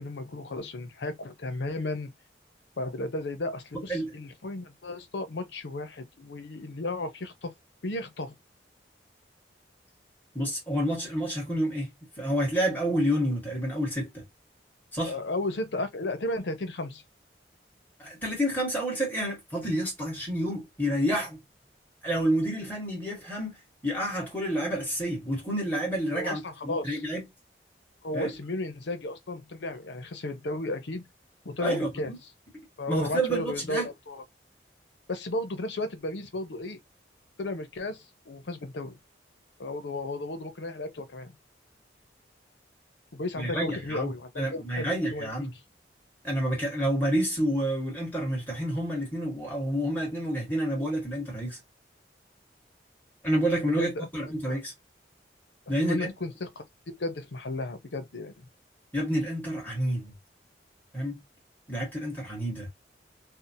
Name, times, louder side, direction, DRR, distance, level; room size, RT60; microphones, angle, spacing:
voice 1, 0.0-2.1 2.8-7.5 7.8-8.3 15.1-17.0 26.1-27.0 28.0-31.0 31.4-32.1 32.8-34.2 35.1-36.8 37.4-39.0 39.6-41.4 43.1-45.3 53.8-54.1 54.5-54.6 55.8-58.4, left 2 dB, 80° left, 0.7 m, -34 dB
voice 2, 10.3-14.2 14.9-15.1 18.0-21.4 22.0-23.6 23.8-27.2 28.1-28.3 31.6-32.2 32.9-33.9 43.4-45.5 46.2-51.6 53.2-54.7 55.7-56.1 58.9-60.1 60.9-61.2 61.7-62.7, equal, 10° left, 1.4 m, -29 dB
2.7 x 2.1 x 2.7 m
head